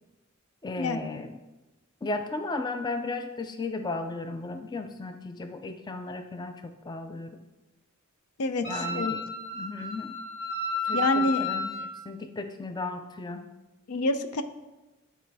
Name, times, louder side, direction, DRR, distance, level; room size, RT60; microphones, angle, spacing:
voice 1, 0.6-1.3 2.0-7.4 8.6-9.2 9.5-10.2 10.8-11.7 12.1-13.5, left 3 dB, 20° left, 8 dB, 0.3 m, -35 dB
voice 2, 8.4-9.1 10.9-11.5 13.9-14.4, left 2 dB, 85° left, 10 dB, 0.5 m, -27 dB
Wind instrument woodwind instrument, 8.6-11.9, left 2 dB, 55° left, 2.6 m, -32 dB
11.0 x 4.4 x 3.4 m, 1.1 s
head